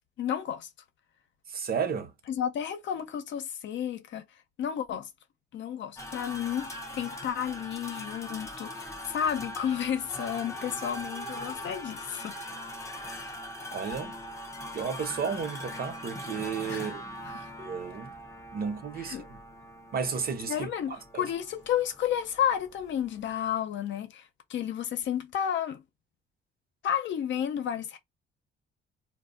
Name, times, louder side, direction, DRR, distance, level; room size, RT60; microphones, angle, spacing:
voice 1, 0.2-0.7 2.3-4.2 4.6-5.1 5.5-12.4 13.1-13.3 16.7-16.9 17.3-17.5 19.1-19.2 20.5-24.2 24.5-25.8 26.8-28.0, left 9 dB, 70° left, 0.7 m, -32 dB
voice 2, 1.5-2.1 13.7-14.2 14.7-18.2 18.5-19.4 19.9-21.2, right 6 dB, 50° right, 0.7 m, -33 dB
sound 1, 6.0-23.5, equal, 15° left, 0.6 m, -41 dB
2.1 x 2.1 x 3.6 m
cardioid pair, 90°, 20 cm